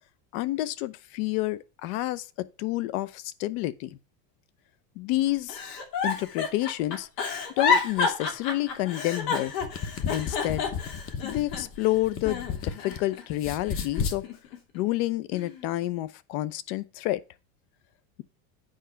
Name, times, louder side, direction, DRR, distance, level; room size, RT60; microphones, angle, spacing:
voice 1, 0.3-4.0 5.0-5.6 6.0-7.1 7.6-9.5 10.1-10.7 11.2-14.2 14.7-17.2, left 16 dB, 65° left, 0.8 m, -29 dB
Giggle, 5.5-11.9 12.2-13.2 13.7-14.8 15.3-15.7, left 5 dB, 85° left, 2.7 m, -30 dB
sound 1, 9.5-13.0 13.3-14.2, left 6 dB, 30° left, 0.8 m, -33 dB
9.2 x 5.1 x 5.7 m
supercardioid pair, 150°, 48 cm